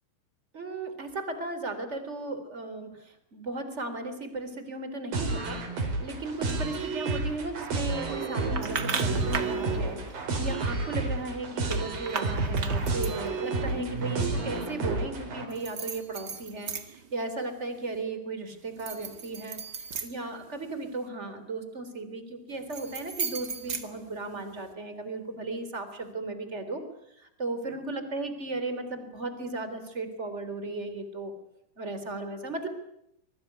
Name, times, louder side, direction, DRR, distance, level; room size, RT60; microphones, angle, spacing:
voice 1, 0.5-26.8 27.1-31.3 31.8-32.7, right 2 dB, 15° right, 9 dB, 3.2 m, -36 dB
sound 1, 5.1-15.5, right 3 dB, 50° right, 5.9 m, -30 dB
sound 2, 8.6-9.6 11.7-13.3 15.5-17.1 17.5-18.0 18.7-20.9 22.5-24.6, right 6 dB, 80° right, 0.9 m, -36 dB
25.0 x 22.0 x 9.5 m, 0.78 s
omnidirectional pair, 5.4 m